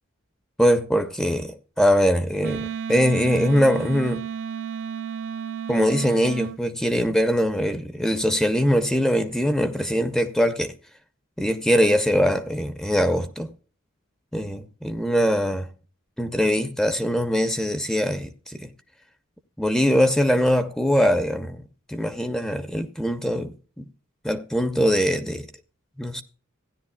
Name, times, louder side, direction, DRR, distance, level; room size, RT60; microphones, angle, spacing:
voice 1, 0.6-4.2 5.7-10.7 11.4-13.5 14.3-15.7 16.2-18.7 19.6-21.6 21.9-23.9 24.2-25.5 26.0-26.2, equal, 5° left, 0.6 m, -22 dB
Wind instrument woodwind instrument, 2.4-6.6, right 7 dB, 65° right, 0.4 m, -32 dB
16.0 x 10.5 x 2.2 m
head